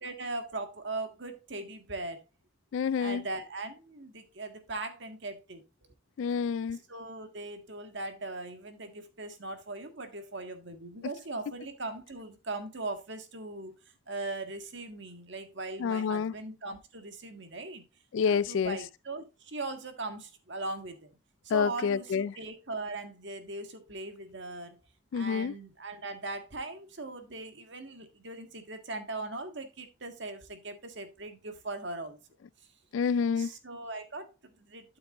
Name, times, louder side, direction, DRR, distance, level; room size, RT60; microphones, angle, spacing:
voice 1, 0.0-2.2 3.0-5.6 6.9-13.7 14.1-17.8 18.3-21.1 21.4-24.8 25.1-32.2 33.4-35.0, right 2 dB, 60° right, 1.6 m, -39 dB
voice 2, 2.7-3.2 6.2-6.8 15.8-16.3 18.1-18.8 21.5-22.4 25.1-25.5 32.9-33.5, left 6 dB, 70° left, 0.3 m, -28 dB
12.5 x 6.8 x 2.5 m
head